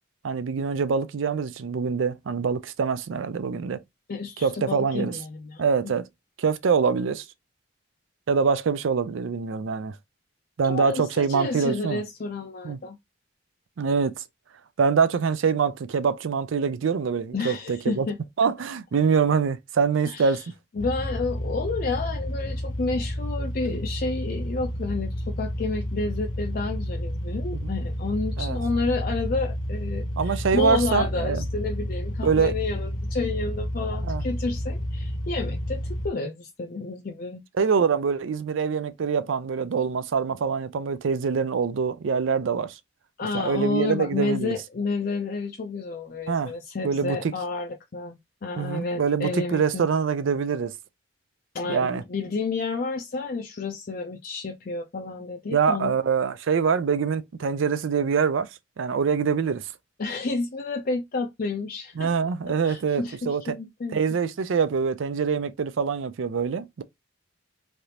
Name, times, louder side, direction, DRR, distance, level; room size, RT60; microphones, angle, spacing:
voice 1, 0.2-3.8 4.4-5.2 5.6-6.0 6.4-7.2 8.3-10.0 10.6-12.0 12.6-12.8 13.8-14.2 14.8-18.1 18.4-20.4 27.5-27.7 28.4-28.6 30.2-31.5 32.2-32.5 34.0-34.2 37.6-42.8 43.3-44.5 46.3-46.5 46.8-47.3 48.6-50.7 51.7-52.0 55.5-58.5 58.8-59.7 62.0-63.4 63.9-66.8, right 6 dB, 75° right, 0.4 m, -24 dB
voice 2, 4.1-5.9 10.6-13.0 17.3-18.2 20.0-20.4 20.8-37.4 43.2-49.9 51.5-55.9 60.0-62.1 62.6-64.0, left 3 dB, 45° left, 0.4 m, -30 dB
sound 1, 20.8-36.1, equal, 65° left, 0.8 m, -30 dB
3.3 x 2.4 x 2.8 m
head